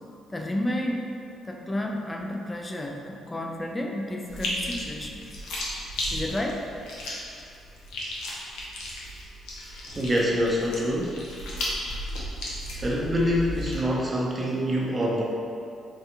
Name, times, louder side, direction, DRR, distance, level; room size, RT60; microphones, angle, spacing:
voice 1, 0.3-1.1 1.4-5.4 6.1-6.7, left 1 dB, 20° left, 1 dB, 0.4 m, -31 dB
sound 1, 4.3-13.8, left 1 dB, 85° left, 0.6 m, -35 dB
voice 2, 9.9-11.2 12.7-15.2, equal, 25° right, -3 dB, 0.6 m, -25 dB
4.4 x 2.3 x 2.9 m, 2.6 s
cardioid pair, 90°, 0 cm